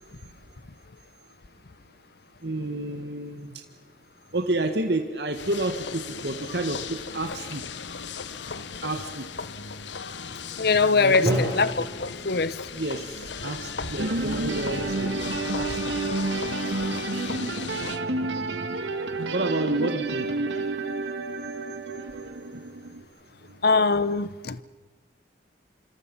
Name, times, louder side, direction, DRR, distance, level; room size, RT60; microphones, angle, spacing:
voice 1, 2.4-3.6 4.3-7.6 8.8-9.3 11.0-11.4 12.7-15.9 19.3-20.3 21.3-21.4 21.7-21.8 22.2-22.3 23.4-23.6, right 2 dB, 65° right, 1.8 m, -30 dB
sound 1, 5.3-18.0, left 5 dB, 85° left, 1.1 m, -37 dB
voice 2, 10.6-11.7 12.0-12.6 19.8-19.9 23.6-24.6, left 4 dB, 60° left, 0.9 m, -22 dB
Drum, 11.3-15.0, equal, 20° left, 6.8 m, -34 dB
sound 2, 14.0-23.0, right 2 dB, 90° right, 1.8 m, -30 dB
26.5 x 26.0 x 5.6 m
head